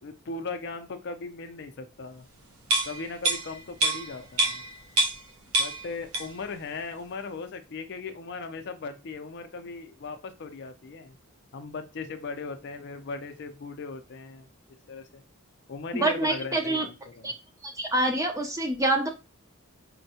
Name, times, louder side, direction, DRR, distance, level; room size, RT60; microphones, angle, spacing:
voice 1, 0.0-2.3 2.8-4.6 5.6-11.2 11.5-14.5 14.9-15.2 15.7-17.3, left 4 dB, 50° left, 8 dB, 0.4 m, -38 dB
sound 1, 2.6-5.3 5.5-6.5 6.8-7.0, right 2 dB, 80° right, 0.8 m, -27 dB
voice 2, 15.9-16.9 17.2-17.3 17.6-19.1, right 2 dB, 15° right, 4 dB, 0.4 m, -26 dB
4.3 x 2.1 x 2.7 m, 0.28 s
head